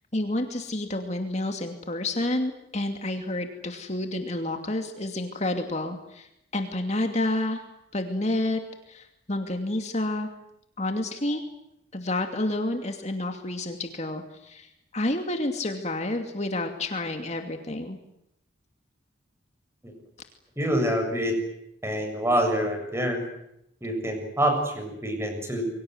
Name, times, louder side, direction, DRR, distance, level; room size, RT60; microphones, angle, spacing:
voice 1, 0.1-6.3 6.5-7.6 7.9-8.6 8.9-10.3 10.8-11.4 11.9-18.0, left 1 dB, 35° left, 5 dB, 2.6 m, -29 dB
voice 2, 20.6-21.4 21.8-23.2 23.8-25.6, equal, 15° right, 5 dB, 7.2 m, -26 dB
28.5 x 24.0 x 7.9 m, 0.79 s
head